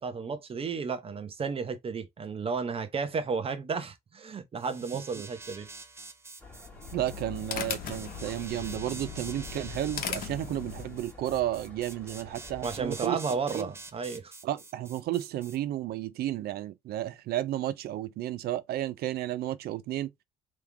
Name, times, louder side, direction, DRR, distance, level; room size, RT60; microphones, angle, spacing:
voice 1, 0.0-5.7 12.6-14.3, right 5 dB, 35° right, 1.0 m, -33 dB
sound 1, 4.6-15.6, right 3 dB, 15° right, 0.6 m, -47 dB
sound 2, 6.4-13.0, left 3 dB, 10° left, 1.8 m, -50 dB
sound 3, 6.7-11.1, left 8 dB, 60° left, 1.0 m, -38 dB
voice 2, 6.9-13.2 13.5-13.7 14.4-20.1, right 13 dB, 65° right, 0.6 m, -32 dB
3.5 x 3.2 x 3.4 m
cardioid pair, 110°, 17 cm